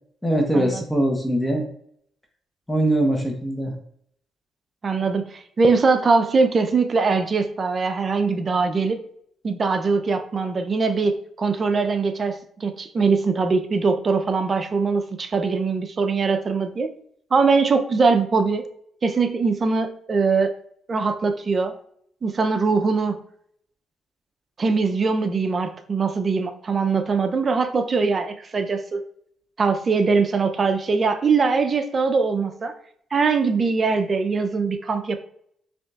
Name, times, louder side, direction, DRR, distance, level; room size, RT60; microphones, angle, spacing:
voice 1, 0.2-1.6 2.7-3.7, right 1 dB, 10° left, 1 dB, 0.9 m, -22 dB
voice 2, 4.8-9.0 9.4-16.9 17.3-18.7 19.0-20.6 20.9-21.7 22.2-23.2 24.6-29.0 29.6-32.7 33.1-35.2, right 4 dB, 40° right, 8 dB, 0.5 m, -22 dB
5.1 x 2.9 x 2.4 m, 0.65 s
cardioid pair, 90°, 0 cm